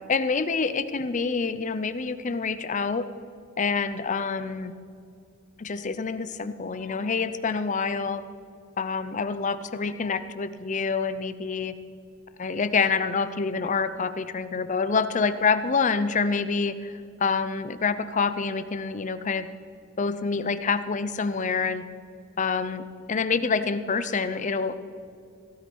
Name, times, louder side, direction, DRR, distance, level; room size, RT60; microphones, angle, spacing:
voice 1, 0.0-3.0 3.6-4.7 5.6-8.2 8.8-11.7 12.4-16.9 17.2-19.5 20.0-21.8 22.4-24.8, left 5 dB, 35° left, 12 dB, 0.5 m, -27 dB
17.0 x 12.0 x 4.6 m, 2.4 s
head